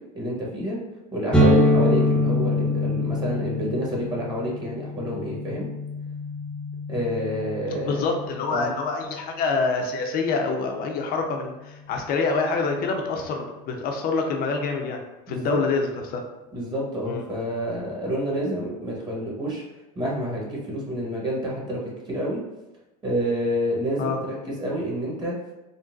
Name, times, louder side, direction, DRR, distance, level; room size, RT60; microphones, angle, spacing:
voice 1, 0.1-0.8 1.1-5.7 6.9-8.0 8.5-8.7 15.3-15.6 16.5-19.6 19.9-22.4 23.0-25.3, equal, 20° right, -4 dB, 1.1 m, -28 dB
sound 1, 1.3-8.9, left 1 dB, 5° left, 0.6 m, -25 dB
voice 2, 7.8-15.0 15.3-16.2 17.0-17.2 24.0-24.2, left 4 dB, 50° left, 3 dB, 0.6 m, -26 dB
3.8 x 2.1 x 2.4 m, 1.0 s
supercardioid pair, 100°, 20 cm